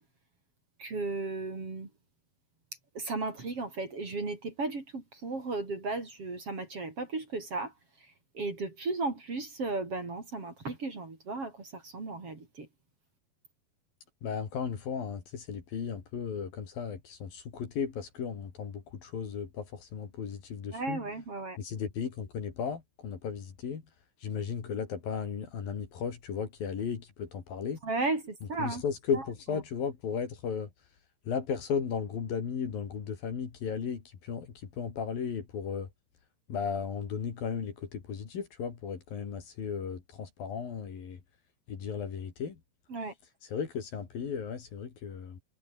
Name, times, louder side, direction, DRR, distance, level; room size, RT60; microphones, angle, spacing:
voice 1, 0.8-1.9 2.9-7.7 8.3-12.7 20.7-21.6 27.8-28.8 29.5-29.6 42.9-43.1, right 3 dB, 35° right, 4.9 m, -35 dB
voice 2, 14.2-21.0 21.6-23.8 24.2-27.8 28.6-30.7 31.3-35.9 36.5-41.2 41.7-42.6 43.5-45.4, left 6 dB, 55° left, 4.7 m, -35 dB
omnidirectional pair, 5.0 m